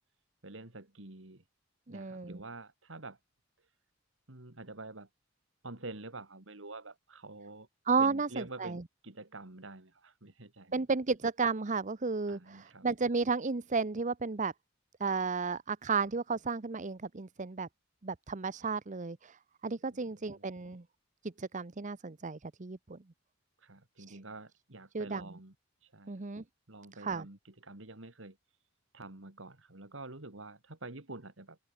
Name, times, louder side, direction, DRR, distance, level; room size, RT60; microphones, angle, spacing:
voice 1, 0.4-1.4 1.9-3.2 3.6-3.7 4.3-5.1 5.6-7.7 8.0-10.7 12.3-12.9 19.9-20.4 23.6-25.5 25.8-26.2 26.7-28.4 28.9-31.6, right 2 dB, 75° right, 2.5 m, -47 dB
voice 2, 1.9-2.4 7.9-8.8 10.7-14.5 15.0-17.7 18.0-19.4 19.6-20.8 21.2-23.0 24.1-24.2 24.9-25.2 26.1-26.4 27.0-27.2, right 4 dB, 40° right, 0.8 m, -33 dB
open air
head